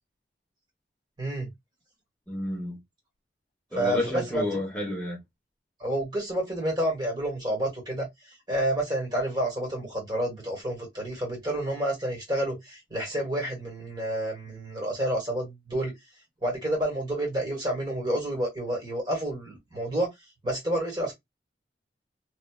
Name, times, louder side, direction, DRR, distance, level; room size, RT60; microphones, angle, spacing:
voice 1, 1.2-1.5 3.7-4.4 5.8-15.9 16.4-20.1 20.4-21.1, right 1 dB, 25° right, 1.5 m, -29 dB
voice 2, 2.3-2.8 3.7-5.2, left 1 dB, 10° left, 1.0 m, -30 dB
3.1 x 2.5 x 2.3 m
head